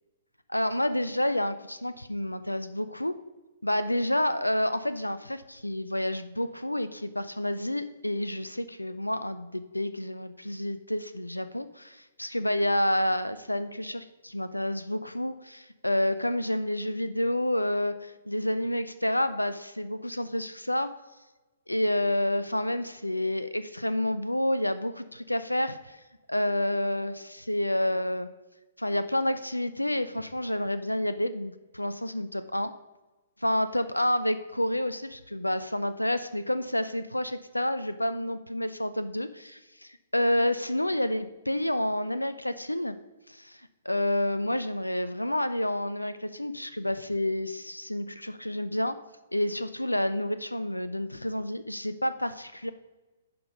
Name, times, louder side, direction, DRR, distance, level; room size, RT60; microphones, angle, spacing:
voice 1, 0.5-3.2 3.6-20.9 21.7-26.0 26.3-28.3 28.8-32.7 33.4-43.0 43.3-49.0 49.3-52.7, left 1 dB, 90° left, 12 dB, 0.4 m, -29 dB
10.5 x 5.1 x 5.2 m, 1.2 s
figure-of-eight pair, 120°, 0 cm